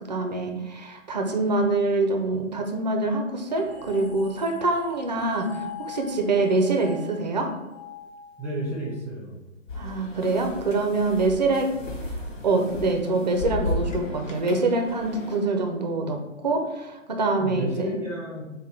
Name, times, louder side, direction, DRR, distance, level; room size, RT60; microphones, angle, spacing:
voice 1, 0.1-7.5 9.8-11.7 12.4-18.0, right 3 dB, 35° right, 3 dB, 0.4 m, -25 dB
sound 1, 3.5-8.9, left 4 dB, 35° left, 1.3 m, -43 dB
voice 2, 8.4-9.4 17.4-18.5, equal, 5° right, -7 dB, 1.1 m, -31 dB
sound 2, 9.7-15.4, left 1 dB, 70° left, 1.3 m, -34 dB
5.2 x 2.2 x 3.2 m, 1.0 s
figure-of-eight pair, 135°, 39 cm